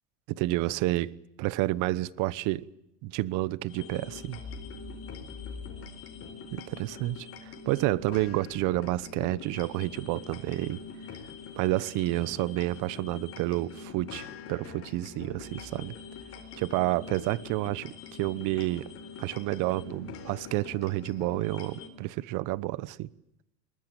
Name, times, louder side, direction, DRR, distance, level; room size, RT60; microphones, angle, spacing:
voice 1, 0.3-2.7 3.0-4.4 6.5-10.8 11.6-15.9 16.5-18.9 19.2-23.1, right 18 dB, 50° right, 1.0 m, -30 dB
sound 1, 3.7-21.9, left 5 dB, 35° left, 4.3 m, -44 dB
22.0 x 20.5 x 8.9 m
supercardioid pair, 140°, 38 cm